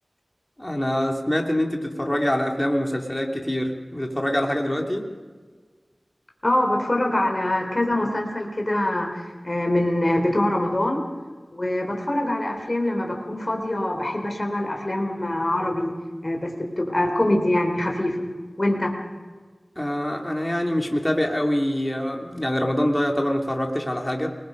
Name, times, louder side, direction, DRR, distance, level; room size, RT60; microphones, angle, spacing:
voice 1, 0.6-5.1 19.8-24.3, equal, 15° left, 1 dB, 2.9 m, -25 dB
voice 2, 6.4-11.0 11.5-15.9 16.2-18.2 18.6-18.9, left 1 dB, 35° left, 2 dB, 4.1 m, -24 dB
28.5 x 21.0 x 5.3 m, 1.4 s
wide cardioid pair, 60°, 0 cm